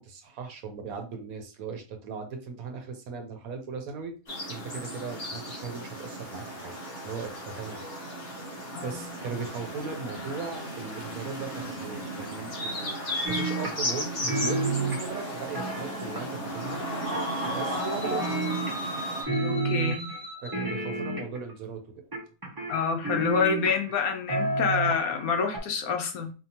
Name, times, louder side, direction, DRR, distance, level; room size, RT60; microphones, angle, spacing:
voice 1, 0.0-4.1 4.5-6.7 7.0-7.8 8.8-12.9 13.3-16.8 17.5-18.4 20.4-21.8, right 5 dB, 75° right, 4 dB, 1.2 m, -38 dB
sound 1, 4.3-19.2, equal, 45° left, 1.3 m, -35 dB
voice 2, 8.7-9.1 17.7-17.9 19.4-20.1 22.7-26.3, left 5 dB, 75° left, 5 dB, 1.1 m, -28 dB
sound 2, 13.2-14.0 14.3-16.5 17.1-17.8 18.0-19.0 19.3-20.2 20.5-21.5 22.1-23.9 24.3-25.2 25.5-25.6, right 2 dB, 20° right, 0.7 m, -30 dB
sound 3, 17.0-20.8, equal, 55° right, 1.2 m, -38 dB
4.3 x 2.8 x 2.9 m, 0.34 s
omnidirectional pair, 1.5 m